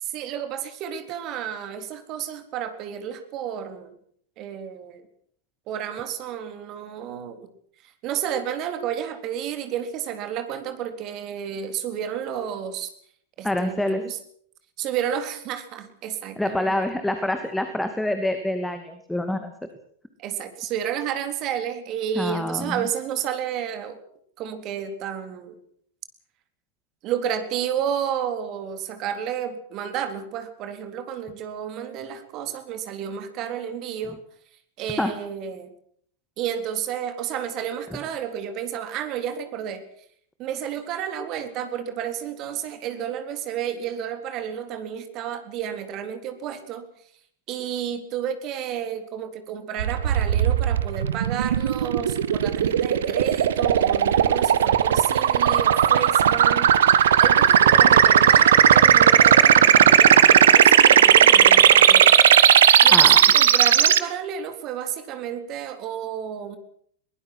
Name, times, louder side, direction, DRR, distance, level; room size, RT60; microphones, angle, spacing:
voice 1, 0.0-4.0 4.4-5.1 5.7-7.5 7.8-12.9 13.4-14.2 14.8-16.8 20.2-24.0 24.4-25.6 27.0-34.2 34.8-35.7 36.4-39.8 40.4-46.9 47.5-62.2 62.8-66.6, right 9 dB, 40° right, 9 dB, 3.8 m, -31 dB
voice 2, 13.4-14.0 16.4-19.5 22.2-22.9 35.0-35.1 62.9-63.2, left 1 dB, 5° left, 7 dB, 2.4 m, -26 dB
sound 1, 49.8-64.0, right 9 dB, 65° right, 1.4 m, -16 dB
23.0 x 19.5 x 6.3 m, 0.62 s
figure-of-eight pair, 90°, 0 cm